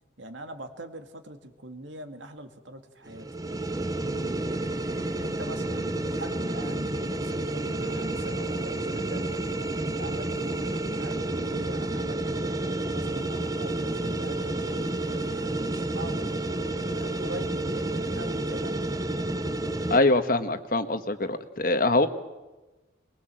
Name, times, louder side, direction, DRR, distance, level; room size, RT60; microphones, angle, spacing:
voice 1, 0.2-3.3 4.0-9.4 9.8-16.3 16.9-18.8, right 1 dB, 75° right, 7 dB, 2.2 m, -42 dB
sound 1, 3.1-20.0, right 2 dB, 20° right, 0.7 m, -30 dB
voice 2, 19.9-22.1, left 2 dB, 45° left, 10 dB, 1.4 m, -23 dB
23.0 x 22.0 x 7.7 m, 1.1 s
head